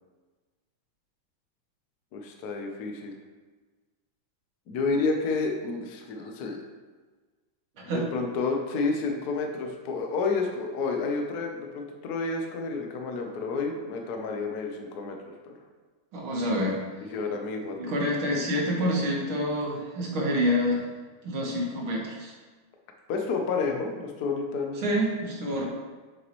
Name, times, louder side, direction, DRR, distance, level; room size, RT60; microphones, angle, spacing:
voice 1, 2.1-3.1 4.7-6.6 7.9-15.2 15.4-15.5 17.0-17.9 23.1-24.8, left 4 dB, 60° left, 2 dB, 1.2 m, -30 dB
voice 2, 16.1-16.8 17.8-20.8 21.2-22.4 24.8-25.7, equal, 85° right, -2 dB, 2.4 m, -27 dB
7.6 x 6.5 x 3.1 m, 1.3 s
omnidirectional pair, 2.2 m